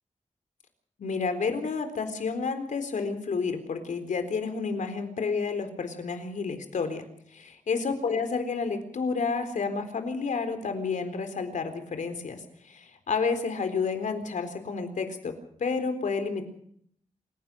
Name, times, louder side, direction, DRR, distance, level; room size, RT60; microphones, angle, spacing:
voice 1, 1.0-7.0 7.3-15.3 15.6-16.4, left 5 dB, 80° left, 8 dB, 4.0 m, -30 dB
27.5 x 16.5 x 6.4 m, 0.65 s
wide cardioid pair, 175°, 13 cm